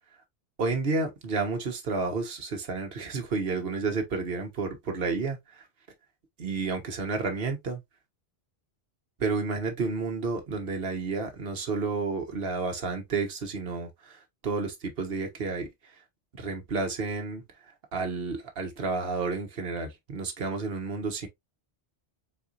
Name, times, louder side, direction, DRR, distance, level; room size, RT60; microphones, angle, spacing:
voice 1, 0.6-5.4 6.4-7.8 9.2-15.7 16.4-17.4 17.9-21.3, right 4 dB, 60° right, 1.3 m, -31 dB
4.3 x 4.2 x 2.5 m
omnidirectional pair, 1.1 m